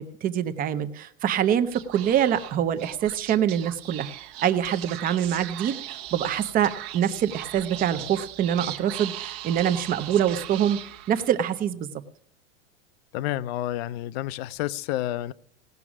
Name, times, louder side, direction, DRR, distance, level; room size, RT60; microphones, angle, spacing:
voice 1, 0.0-4.1 4.4-10.8 11.1-11.9, right 9 dB, 25° right, 0.6 m, -25 dB
Speech / Whispering, 1.7-11.5, right 14 dB, 50° right, 1.0 m, -39 dB
voice 2, 13.1-15.3, left 14 dB, 55° left, 0.6 m, -29 dB
17.5 x 6.1 x 6.1 m
supercardioid pair, 145°, 37 cm